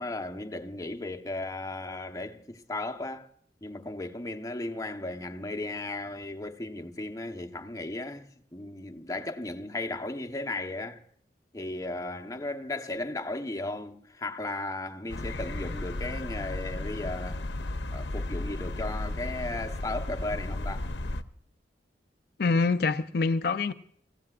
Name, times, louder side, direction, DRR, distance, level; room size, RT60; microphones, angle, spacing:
voice 1, 0.0-3.3 3.6-11.0 11.5-17.5 17.9-20.9, left 2 dB, 20° left, 1.0 m, -36 dB
sound 1, 15.1-21.2, left 1 dB, 80° left, 0.9 m, -34 dB
voice 2, 22.4-23.7, left 4 dB, 60° left, 0.5 m, -25 dB
25.5 x 16.0 x 2.5 m
head